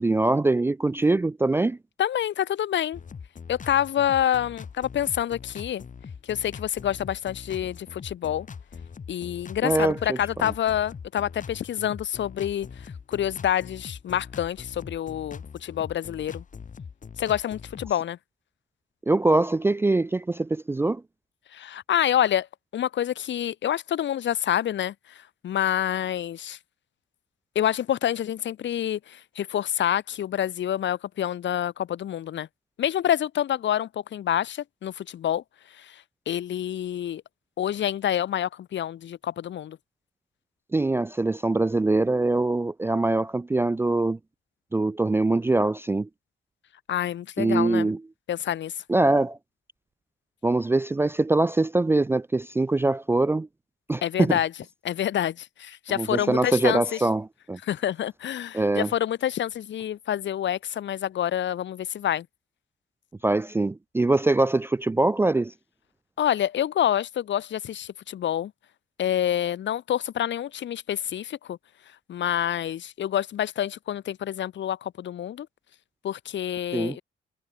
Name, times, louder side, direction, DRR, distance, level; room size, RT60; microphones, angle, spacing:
voice 1, 0.0-1.8 9.6-10.2 19.1-21.0 40.7-44.2 44.7-46.1 47.4-48.0 48.9-49.4 50.4-53.5 53.9-54.4 56.0-57.6 58.5-58.9 63.2-65.5 76.7-77.0, right 2 dB, 10° right, 0.4 m, -23 dB
voice 2, 2.0-3.0 3.5-5.8 6.2-8.5 9.1-16.4 17.2-18.2 21.5-22.5 22.7-26.6 27.5-32.5 32.8-37.2 37.6-39.8 46.9-47.9 48.3-48.8 54.0-54.5 54.8-57.1 57.6-62.3 66.2-68.5 69.0-71.6 71.9-75.5 76.0-77.0, left 10 dB, 65° left, 2.8 m, -27 dB
sound 1, 2.9-17.9, left 6 dB, 40° left, 3.4 m, -42 dB
cardioid pair, 90°, 20 cm